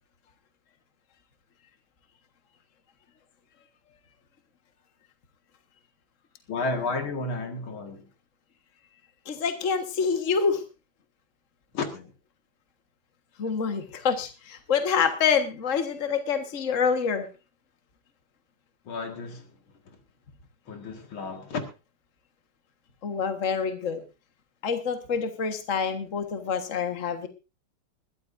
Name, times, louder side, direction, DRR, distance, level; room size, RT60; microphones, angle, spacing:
voice 1, 6.5-8.1 11.7-12.1 18.9-19.4 20.7-21.6, left 3 dB, 75° left, 2.8 m, -32 dB
voice 2, 9.3-10.6 13.4-17.3 23.0-24.0 24.6-27.3, left 6 dB, 40° left, 1.8 m, -26 dB
21.0 x 13.0 x 2.6 m
omnidirectional pair, 2.3 m